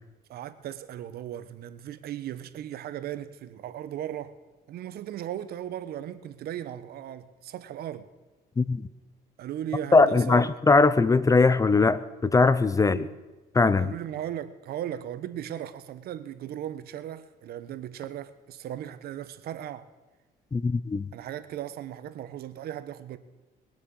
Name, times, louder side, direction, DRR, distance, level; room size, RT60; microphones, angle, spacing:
voice 1, 0.3-4.4 4.7-8.1 9.4-10.6 12.9-13.1 13.8-19.9 21.1-23.2, right 11 dB, 65° right, 1.1 m, -37 dB
voice 2, 8.6-8.9 9.9-13.0 13.5-13.9 20.5-21.1, left 3 dB, 20° left, 0.6 m, -21 dB
21.5 x 7.4 x 7.8 m
cardioid pair, 110°, 17 cm